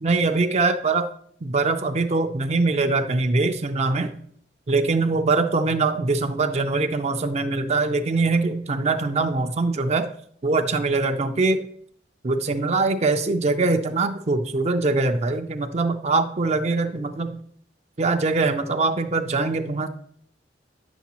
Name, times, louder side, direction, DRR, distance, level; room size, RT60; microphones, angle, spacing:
voice 1, 0.0-1.1 1.4-4.1 4.7-10.1 10.4-11.6 12.2-17.4 18.0-19.9, right 3 dB, 35° right, 7 dB, 0.4 m, -22 dB
9.4 x 7.1 x 2.9 m, 0.62 s
head